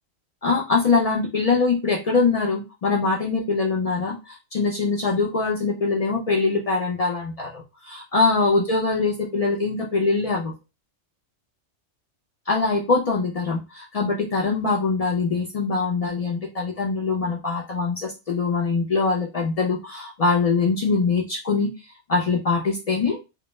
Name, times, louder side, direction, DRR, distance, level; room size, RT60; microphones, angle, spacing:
voice 1, 0.4-10.5 12.5-21.7 22.1-23.2, left 4 dB, 70° left, -2 dB, 0.3 m, -23 dB
2.1 x 2.1 x 3.0 m, 0.27 s
omnidirectional pair, 1.2 m